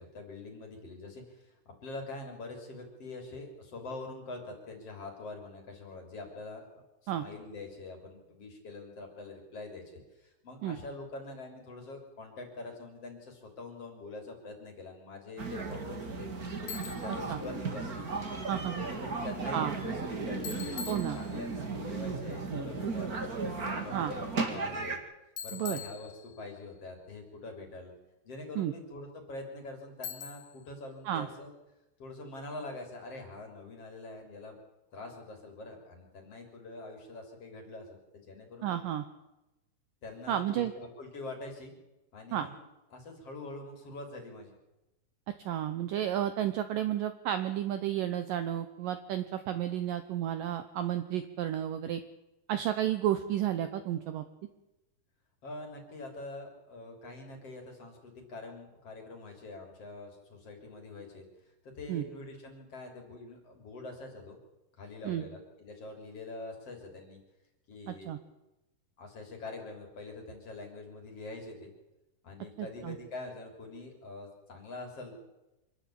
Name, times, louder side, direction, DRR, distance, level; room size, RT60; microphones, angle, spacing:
voice 1, 0.0-9.8 10.1-23.2 23.7-25.0 25.4-27.9 28.2-31.5 32.0-34.6 34.9-38.9 40.0-41.8 42.1-42.6 42.9-44.6 55.4-61.3 61.6-64.4 64.8-67.2 67.7-68.1 69.0-71.7 72.2-75.2, left 2 dB, 40° left, 3 dB, 4.0 m, -44 dB
sound 1, 15.4-25.0, right 4 dB, 35° right, 1.5 m, -35 dB
Bicycle, 16.7-17.2 20.4-21.7 25.4-26.6 30.0-30.7, left 8 dB, 75° left, 3.7 m, -43 dB
voice 2, 18.5-18.9 19.5-19.7 20.9-21.2 23.9-24.1 25.5-25.8 28.6-28.7 31.1-31.3 38.6-39.1 40.3-40.7 42.3-42.5 45.5-52.0 52.5-54.2 61.9-62.0 65.0-65.2 67.9-68.2 72.6-73.0, right 11 dB, 75° right, 10 dB, 2.1 m, -32 dB
26.0 x 11.5 x 8.6 m, 0.98 s
omnidirectional pair, 4.8 m